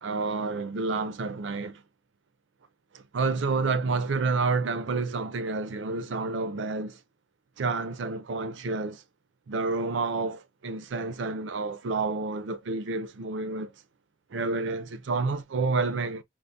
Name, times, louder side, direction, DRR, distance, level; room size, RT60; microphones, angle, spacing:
voice 1, 0.0-1.8 2.9-7.0 7.6-9.0 9.5-13.7 14.3-16.2, right 3 dB, 70° right, 0.4 m, -29 dB
4.4 x 2.0 x 2.6 m
head